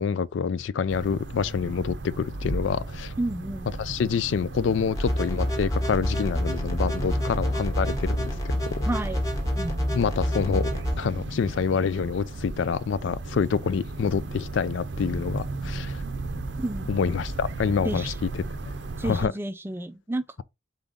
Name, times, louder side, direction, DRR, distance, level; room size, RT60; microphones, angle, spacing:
voice 1, 0.0-3.1 3.8-8.9 9.9-10.7 11.0-16.0 16.9-18.4 19.0-19.3, left 6 dB, 75° left, 0.4 m, -27 dB
sound 1, 0.9-19.3, right 2 dB, 65° right, 0.6 m, -35 dB
voice 2, 3.2-3.7 8.9-9.3 9.6-9.8 16.6-16.9 17.8-18.2 19.0-20.2, right 1 dB, 10° right, 0.3 m, -31 dB
sound 2, 5.0-10.9, equal, 15° left, 1.0 m, -28 dB
4.0 x 3.8 x 3.5 m
head